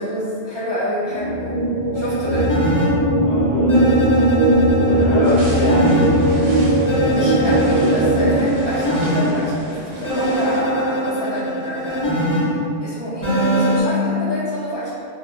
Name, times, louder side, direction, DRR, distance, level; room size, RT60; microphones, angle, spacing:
voice 1, 0.0-1.6 1.9-2.5 7.1-14.9, equal, 35° right, -13 dB, 0.4 m, -27 dB
sound 1, 1.0-8.4, right 1 dB, 60° right, 0.8 m, -18 dB
sound 2, 1.9-2.9 3.7-6.1 6.9-9.3 10.0-12.4 13.2-13.8, right 1 dB, 20° left, 0.5 m, -22 dB
voice 2, 3.2-4.0 4.8-6.1, left 2 dB, 65° left, -7 dB, 0.9 m, -24 dB
sound 3, 5.2-10.6, right 1 dB, 90° right, 1.0 m, -36 dB
2.3 x 2.1 x 3.6 m, 2.4 s
omnidirectional pair, 1.2 m